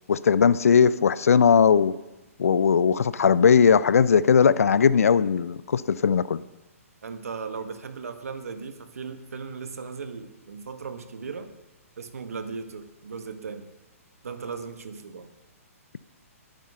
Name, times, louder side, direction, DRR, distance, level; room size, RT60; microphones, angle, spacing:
voice 1, 0.1-1.9 2.4-6.4, left 6 dB, 70° left, 17 dB, 0.7 m, -19 dB
voice 2, 7.0-11.5 12.0-13.7 14.2-15.3, right 5 dB, 75° right, 8 dB, 1.6 m, -37 dB
20.5 x 9.1 x 5.6 m, 1.1 s
hypercardioid pair, 130°, 8 cm